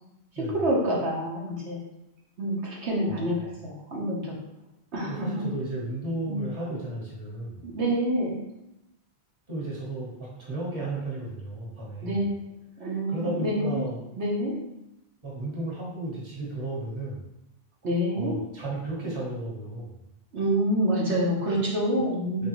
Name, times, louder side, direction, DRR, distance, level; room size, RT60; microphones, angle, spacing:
voice 1, 0.4-1.8 2.4-4.3 4.9-5.4 6.3-6.4 7.6-8.4 12.0-12.4 12.8-13.8 14.2-14.5 17.8-18.3 20.3-22.5, right 1 dB, 80° right, -3 dB, 1.2 m, -27 dB
voice 2, 3.0-3.5 5.1-7.7 9.5-12.2 13.1-14.0 15.2-17.3 18.1-19.9 22.4-22.5, right 2 dB, 25° right, -5 dB, 1.2 m, -34 dB
3.8 x 3.4 x 3.0 m, 0.87 s
omnidirectional pair, 1.1 m